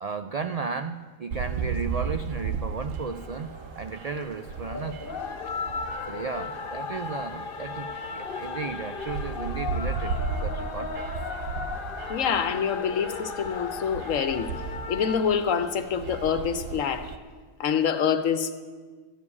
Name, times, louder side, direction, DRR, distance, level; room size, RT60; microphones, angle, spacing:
voice 1, 0.0-3.5 3.8-5.1 6.1-11.1, right 5 dB, 70° right, 9 dB, 0.3 m, -34 dB
sound 1, 1.3-17.2, right 5 dB, 90° right, 1.2 m, -36 dB
sound 2, 3.1-15.2, left 5 dB, 50° left, 1.0 m, -36 dB
voice 2, 12.1-14.5 14.9-17.1 17.6-18.5, left 7 dB, 85° left, 10 dB, 1.3 m, -26 dB
13.5 x 7.1 x 9.6 m, 1.5 s
omnidirectional pair, 1.3 m